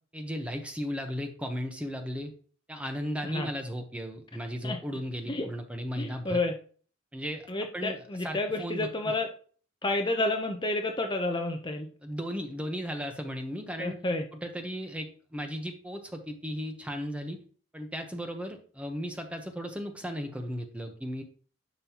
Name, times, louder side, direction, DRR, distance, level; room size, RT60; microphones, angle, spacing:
voice 1, 0.1-2.3 2.7-6.4 7.1-7.5 7.7-8.0 8.2-8.9 12.0-14.0 14.4-17.4 17.7-21.2, equal, 5° right, 4 dB, 1.0 m, -35 dB
voice 2, 6.0-6.5 7.5-9.3 9.8-11.9 13.8-14.2, left 2 dB, 25° left, 4 dB, 0.7 m, -30 dB
11.0 x 5.4 x 3.0 m, 0.43 s
head